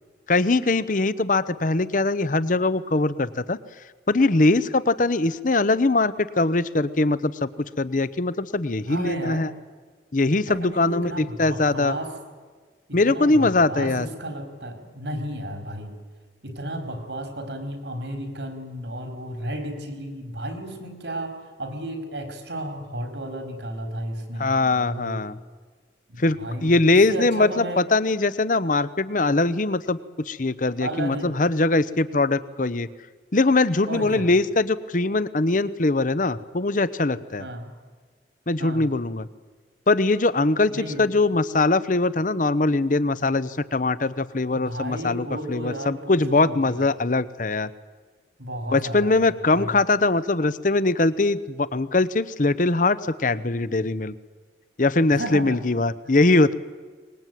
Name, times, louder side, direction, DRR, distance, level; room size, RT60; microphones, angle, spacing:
voice 1, 0.3-3.6 4.1-9.5 10.1-12.0 12.9-14.1 24.4-25.4 26.2-32.9 33.3-37.4 38.5-39.3 39.9-47.7 48.7-54.1 54.8-56.5, left 2 dB, 45° left, 16 dB, 0.9 m, -22 dB
voice 2, 8.9-9.4 10.5-12.1 12.9-15.9 16.4-25.3 26.1-27.8 30.8-31.4 33.9-34.3 37.4-37.7 38.6-38.9 40.7-41.1 44.5-46.9 48.4-49.3 49.5-49.7 55.1-55.6, right 1 dB, 85° right, 6 dB, 4.5 m, -33 dB
24.5 x 20.5 x 9.3 m, 1.4 s
head